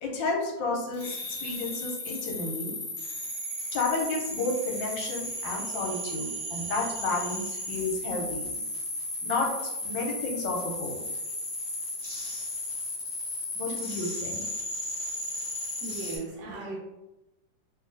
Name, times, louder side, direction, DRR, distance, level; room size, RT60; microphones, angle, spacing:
voice 1, 0.0-2.7 3.7-8.5 9.2-9.5 9.8-11.0 13.5-14.4, left 3 dB, 85° left, 0 dB, 1.4 m, -31 dB
sound 1, 0.9-16.2, left 1 dB, 45° left, 1.1 m, -35 dB
voice 2, 15.8-16.8, right 3 dB, 75° right, -1 dB, 1.1 m, -37 dB
2.8 x 2.7 x 2.6 m, 0.96 s
omnidirectional pair, 2.0 m